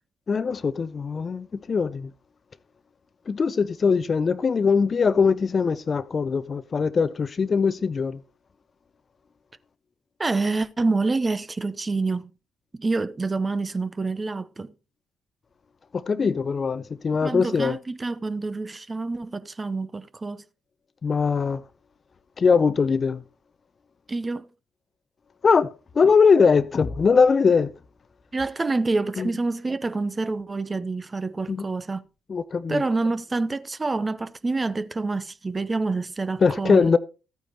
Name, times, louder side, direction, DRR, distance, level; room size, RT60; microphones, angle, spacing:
voice 1, 0.3-2.1 3.3-8.2 15.9-17.8 21.0-21.6 22.4-23.2 25.4-25.7 25.9-27.7 29.2-29.3 31.5-31.6 32.3-32.8 36.4-37.0, left 5 dB, 40° left, 0.6 m, -21 dB
voice 2, 10.2-12.3 12.8-14.7 17.1-20.4 24.1-24.5 28.3-32.0 32.7-36.9, right 3 dB, 30° right, 0.7 m, -27 dB
14.5 x 9.1 x 2.9 m
figure-of-eight pair, 40°, 0 cm